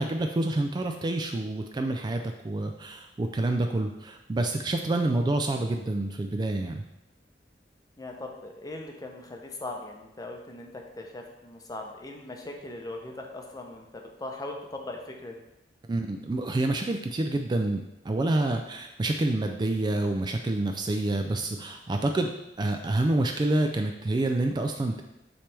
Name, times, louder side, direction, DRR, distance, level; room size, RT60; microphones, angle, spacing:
voice 1, 0.0-6.8 15.9-22.3 22.6-25.0, right 2 dB, 25° right, 5 dB, 0.3 m, -28 dB
voice 2, 5.0-5.4 8.0-15.4, left 2 dB, 20° left, 2 dB, 0.7 m, -40 dB
8.7 x 3.3 x 3.3 m, 0.91 s
head